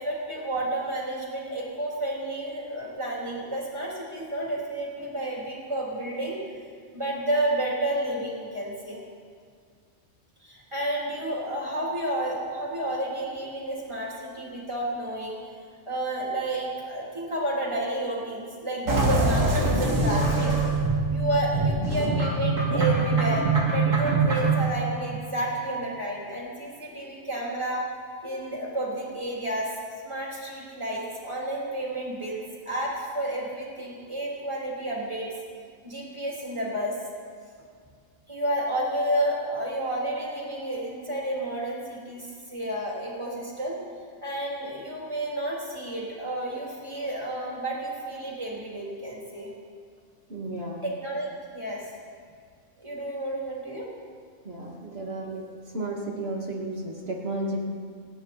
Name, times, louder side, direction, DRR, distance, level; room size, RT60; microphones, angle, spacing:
voice 1, 0.0-6.4 6.9-9.0 10.4-15.4 15.9-20.5 21.1-27.9 28.2-29.7 30.0-35.3 35.8-37.0 38.3-43.8 44.2-49.5 50.8-51.8 52.8-53.9, right 1 dB, 20° right, -5 dB, 3.7 m, -31 dB
sound 1, 18.9-24.7, right 3 dB, 80° right, 2.7 m, -23 dB
voice 2, 50.3-50.8 54.4-55.5 55.7-57.7, right 1 dB, 50° right, -2 dB, 2.8 m, -33 dB
29.0 x 10.0 x 4.4 m, 2.1 s
omnidirectional pair, 1.3 m